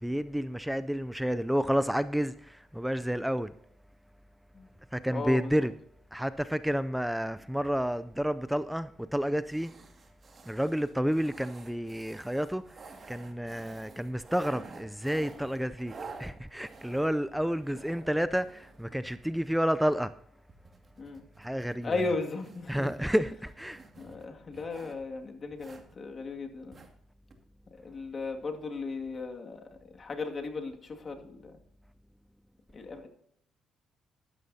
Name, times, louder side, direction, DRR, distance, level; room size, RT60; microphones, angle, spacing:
voice 1, 0.0-3.5 4.9-5.7 6.1-9.7 10.4-15.9 16.2-20.1 21.4-22.1 22.7-23.9, equal, 5° right, 0.4 m, -30 dB
voice 2, 5.1-5.5 21.0-21.2 21.8-23.1 24.0-26.8 27.7-31.6 32.7-33.1, left 3 dB, 40° left, 2.1 m, -36 dB
sound 1, 7.6-8.2 9.2-9.3 9.5-19.7 20.5-25.1 25.5-25.9 26.7-26.9 27.3-27.4, right 4 dB, 40° right, 2.2 m, -50 dB
13.0 x 12.5 x 2.8 m
cardioid pair, 90°, 0 cm